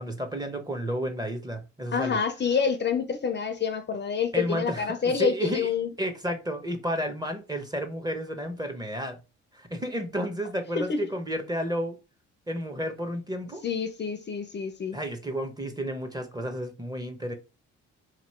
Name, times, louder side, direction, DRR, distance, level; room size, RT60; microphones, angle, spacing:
voice 1, 0.0-2.2 4.3-5.7 6.0-9.2 9.5-12.0 12.5-13.6 14.9-17.3, equal, 15° right, 0.9 m, -32 dB
voice 2, 1.9-5.9 10.8-11.0 13.6-15.0, left 6 dB, 35° left, 0.5 m, -27 dB
3.0 x 2.8 x 4.2 m
cardioid pair, 90°, 30 cm